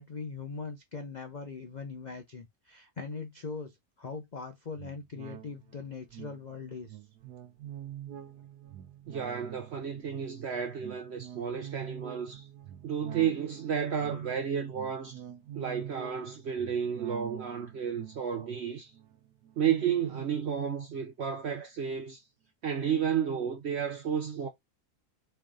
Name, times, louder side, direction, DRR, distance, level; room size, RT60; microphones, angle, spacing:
voice 1, 0.0-7.0, left 4 dB, 60° left, 0.4 m, -41 dB
sound 1, 4.7-20.5 20.9-21.0, right 11 dB, 75° right, 1.4 m, -47 dB
voice 2, 9.1-12.5 12.8-15.2 15.6-18.9 19.6-22.2 22.6-24.5, right 8 dB, 60° right, 0.7 m, -32 dB
4.4 x 3.3 x 3.7 m
omnidirectional pair, 1.7 m